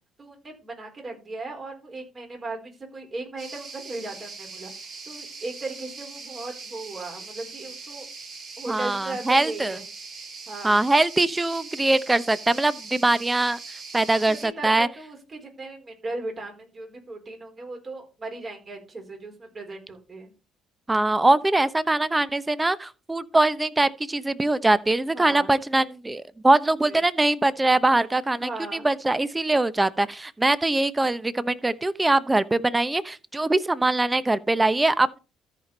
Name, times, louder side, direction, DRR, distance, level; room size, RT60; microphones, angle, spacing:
voice 1, 0.2-4.7 5.1-8.1 8.6-9.8 10.5-10.8 14.3-20.3 25.1-25.5 26.8-27.0 28.4-28.9, right 2 dB, 40° right, 4.4 m, -37 dB
sound 1, 3.4-14.5, right 4 dB, 55° right, 6.4 m, -41 dB
voice 2, 8.7-9.8 10.6-13.6 13.9-14.9 20.9-35.2, right 2 dB, 15° right, 0.8 m, -22 dB
13.5 x 5.2 x 4.1 m
hypercardioid pair, 55°, 0 cm